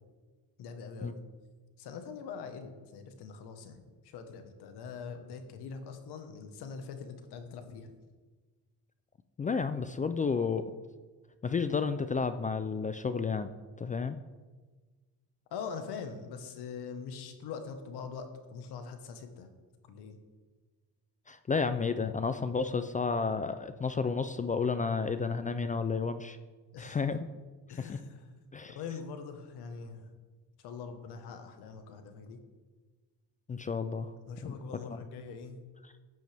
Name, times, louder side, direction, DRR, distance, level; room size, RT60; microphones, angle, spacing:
voice 1, 0.6-1.2 1.8-7.9 15.5-19.5 19.8-20.2 26.7-27.0 27.7-28.3 28.7-30.1 30.6-32.4 34.2-35.6, left 5 dB, 85° left, 7 dB, 1.4 m, -43 dB
voice 2, 9.4-10.6 11.4-13.5 13.8-14.2 21.3-26.4 26.8-27.3 27.8-28.0 28.5-28.8 33.5-34.1 34.4-34.5, left 5 dB, 20° left, 10 dB, 0.3 m, -31 dB
14.0 x 9.2 x 3.5 m, 1.4 s
cardioid pair, 120°, 39 cm